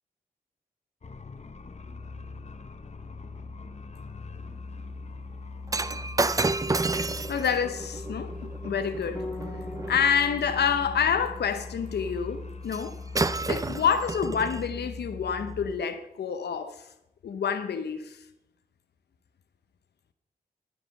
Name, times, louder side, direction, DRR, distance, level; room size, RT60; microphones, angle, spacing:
sound 1, 1.0-15.7, left 3 dB, 40° left, 0.9 m, -41 dB
Shatter, 5.7-10.1 12.7-12.9 13.2-14.7 15.4-15.5, right 3 dB, 20° right, 0.5 m, -30 dB
voice 1, 7.3-9.3 9.9-13.0 13.5-16.9 17.2-18.2, left 7 dB, 80° left, 0.8 m, -28 dB
Bass guitar, 9.2-15.4, left 2 dB, 20° left, 1.7 m, -45 dB
13.5 x 4.9 x 6.5 m
cardioid pair, 45°, 17 cm